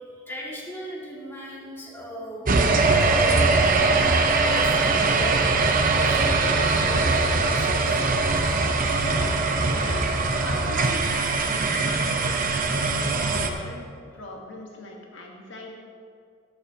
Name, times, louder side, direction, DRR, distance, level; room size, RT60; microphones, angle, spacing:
voice 1, 0.0-2.5 2.9-8.0 8.6-8.7, equal, 10° left, -5 dB, 2.1 m, -38 dB
sound 1, 2.5-13.5, right 3 dB, 45° right, 0.8 m, -22 dB
voice 2, 9.7-10.1 10.4-13.9 14.1-15.8, left 1 dB, 65° left, 0 dB, 1.4 m, -39 dB
13.5 x 11.5 x 2.9 m, 2.3 s
head